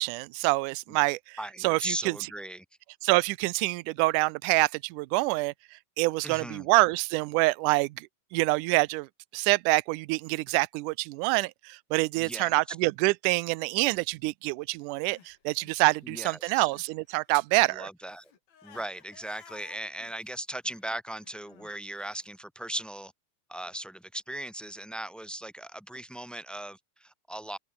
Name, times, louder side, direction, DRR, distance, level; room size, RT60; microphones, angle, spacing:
voice 1, 0.0-2.2 3.0-17.9, right 23 dB, 80° right, 1.9 m, -26 dB
voice 2, 1.4-2.6 6.2-6.7 12.2-12.8 16.0-16.7 17.5-18.3 18.6-23.1 23.5-27.6, right 1 dB, ahead, 1.9 m, -38 dB
Crying sobbing, 14.8-17.0 17.2-22.3, left 7 dB, 85° left, 5.3 m, -56 dB
omnidirectional pair, 4.1 m